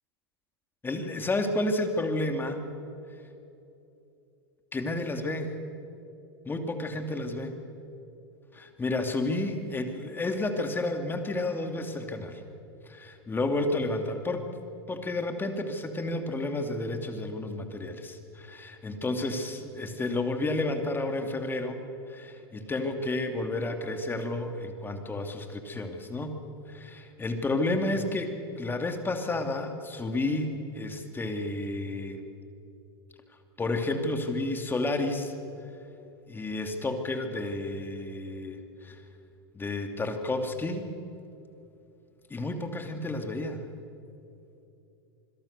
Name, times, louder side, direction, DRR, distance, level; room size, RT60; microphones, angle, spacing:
voice 1, 0.8-2.6 4.7-5.5 6.4-7.6 8.5-12.4 12.9-14.5 14.9-21.8 22.1-26.3 26.7-32.2 33.6-35.3 36.3-39.0 39.5-40.9 42.3-43.7, left 2 dB, 15° left, 6 dB, 2.7 m, -31 dB
26.5 x 21.5 x 6.8 m, 2.8 s
hypercardioid pair, 105°, 13 cm